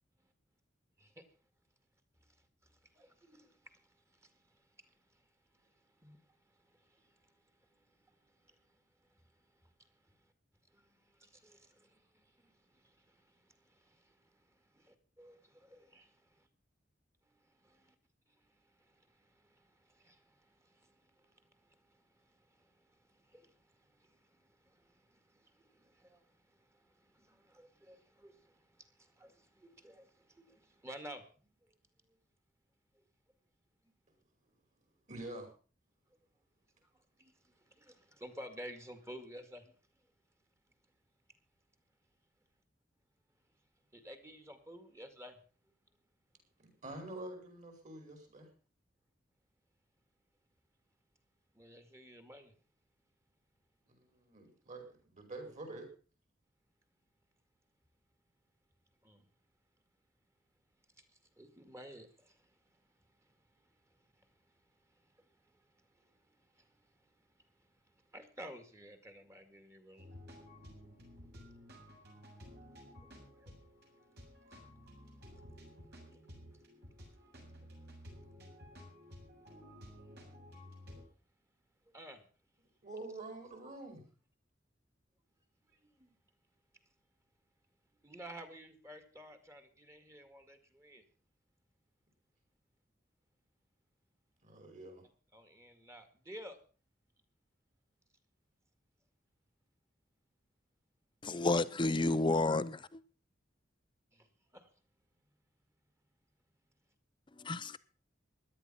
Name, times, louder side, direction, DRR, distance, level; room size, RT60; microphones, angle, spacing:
voice 1, 2.9-3.8 4.1-4.4 4.8-5.2 5.6-5.7 6.0-6.2 6.6-7.3 7.8-8.0 8.2-8.8 9.6-9.7 10.7-16.5 17.6-17.9 18.5-31.2 36.9-39.7 43.9-45.4 51.5-52.5 59.0-59.2 61.4-62.5 65.3-65.7 66.0-66.7 68.1-70.1 73.3-73.5 76.1-76.2 80.2-80.4 81.9-82.2 85.7-86.1 88.0-91.0 95.3-96.6 104.1-104.3 104.5-104.7, equal, 15° right, 2.1 m, -54 dB
voice 2, 35.1-35.5 46.8-48.5 53.9-55.9 82.8-84.0 94.4-95.0, right 2 dB, 40° right, 5.6 m, -47 dB
sound 1, 70.0-81.0, equal, 60° right, 7.3 m, -54 dB
voice 3, 101.2-103.0 107.4-107.8, left 2 dB, 25° left, 0.7 m, -31 dB
17.0 x 11.5 x 5.7 m
head